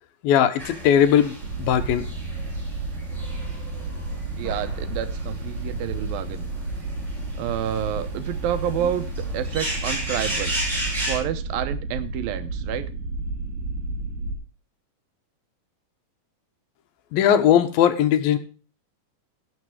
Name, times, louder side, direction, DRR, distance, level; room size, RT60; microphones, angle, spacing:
voice 1, 0.2-2.1 17.1-18.4, left 9 dB, 85° left, 10 dB, 2.8 m, -19 dB
sound 1, 0.6-11.2, right 1 dB, 20° right, 6.3 m, -34 dB
sound 2, 1.4-14.4, right 2 dB, 55° right, 4.4 m, -31 dB
voice 2, 4.3-6.4 7.4-10.6 11.0-12.9, right 10 dB, 90° right, 11 dB, 2.7 m, -29 dB
17.5 x 6.6 x 4.8 m, 0.36 s
omnidirectional pair, 4.1 m